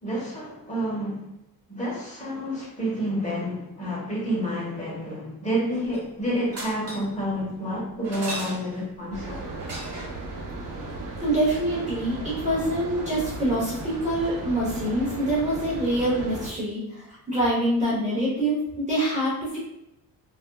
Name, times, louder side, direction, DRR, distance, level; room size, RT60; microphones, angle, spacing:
voice 1, 0.0-1.2 1.7-9.4, equal, 20° left, -6 dB, 1.1 m, -29 dB
sound 1, 5.7-6.1 6.5-7.2 8.0-8.9 9.6-10.2 12.4-12.5 12.6-12.7, right 1 dB, 40° right, 1.2 m, -37 dB
sound 2, 9.1-16.5, right 2 dB, 55° right, 0.7 m, -36 dB
voice 2, 11.2-19.6, right 1 dB, 20° right, -7 dB, 0.8 m, -25 dB
3.3 x 2.5 x 2.2 m, 0.83 s
cardioid pair, 135°, 37 cm